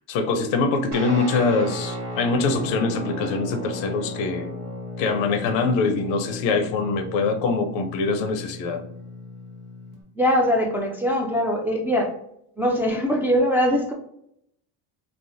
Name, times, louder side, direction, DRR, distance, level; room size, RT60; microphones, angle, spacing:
voice 1, 0.1-4.5 5.0-8.8, left 4 dB, 85° left, 7 dB, 0.6 m, -23 dB
Guitar, 0.9-10.0, left 1 dB, 80° right, 1.2 m, -35 dB
voice 2, 10.2-12.1 12.6-13.9, equal, 5° right, -1 dB, 0.3 m, -22 dB
3.3 x 2.0 x 2.5 m, 0.73 s
cardioid pair, 100°, 44 cm